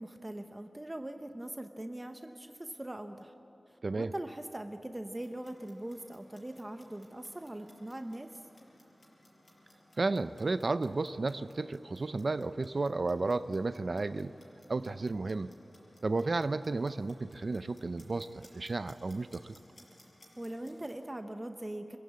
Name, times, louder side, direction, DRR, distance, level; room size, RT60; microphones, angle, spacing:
voice 1, 0.0-3.3 3.7-8.3 20.4-22.0, right 1 dB, 20° right, 6 dB, 0.9 m, -41 dB
Clock, 5.0-21.1, left 1 dB, 50° left, 5.9 m, -62 dB
voice 2, 10.0-14.3 14.7-15.5 16.0-19.5, right 3 dB, 55° right, 12 dB, 0.5 m, -33 dB
25.5 x 15.5 x 8.4 m, 3.0 s
wide cardioid pair, 95°, 0 cm